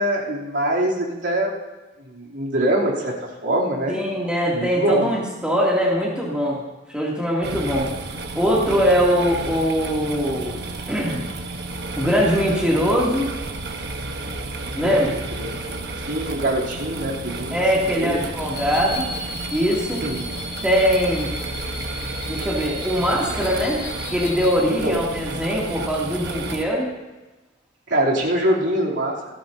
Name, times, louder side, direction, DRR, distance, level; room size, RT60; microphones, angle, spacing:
voice 1, 0.0-1.5 2.0-3.1 3.4-4.0 4.5-5.1 14.7-15.0 15.4-17.6 17.9-18.2 20.0-20.3 24.8-25.0 27.9-29.2, right 1 dB, 80° right, -5 dB, 3.2 m, -23 dB
voice 2, 3.9-6.6 6.9-7.9 8.3-11.2 12.0-13.3 14.7-15.1 17.5-19.1 19.5-20.0 20.6-21.3 22.3-23.8 24.1-26.9, equal, 5° right, -5 dB, 2.6 m, -21 dB
sound 1, 7.4-26.6, right 2 dB, 60° right, 1.3 m, -32 dB
sound 2, 18.4-24.6, left 2 dB, 75° left, 2.1 m, -35 dB
27.0 x 10.0 x 2.8 m, 1.1 s
head